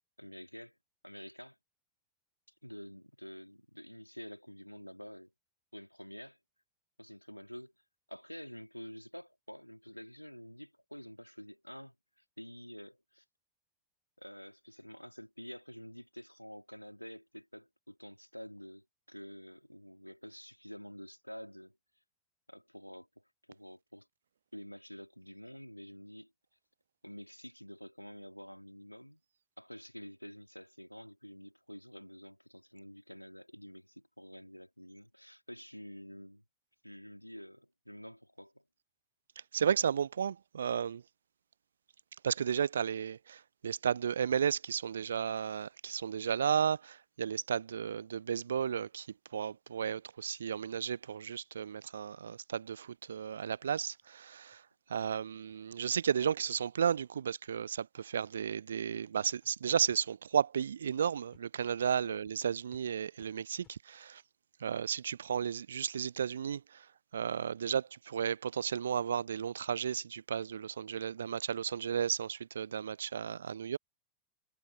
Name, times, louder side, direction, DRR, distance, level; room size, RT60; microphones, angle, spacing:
voice 1, 0.2-0.8 1.0-1.6 2.6-5.3 5.7-6.4 7.0-7.7 8.1-12.0 12.4-13.2 14.2-21.8 22.5-24.1 24.5-26.3 27.0-29.2 29.6-36.4 36.8-38.6 62.0-62.2, equal, 90° left, 2.4 m, -49 dB
voice 2, 39.5-41.0 42.2-49.1 49.3-54.6 54.9-64.2 64.6-73.8, right 8 dB, 70° right, 0.5 m, -33 dB
sound 1, 53.4-53.6 54.0-54.1 54.5-54.6 55.0-55.1 55.5-55.6 56.0-56.1 56.4-56.6 57.0-57.1 57.5-57.6 57.9-58.3 58.9-59.0 59.4-59.5 59.9-60.0 60.4-60.5 60.9-61.0 61.3-61.4 61.8-61.9 62.2-62.3 62.7-62.8 63.2-63.3 63.6-63.8, left 10 dB, 30° left, 5.6 m, -68 dB
figure-of-eight pair, 90°, 0 cm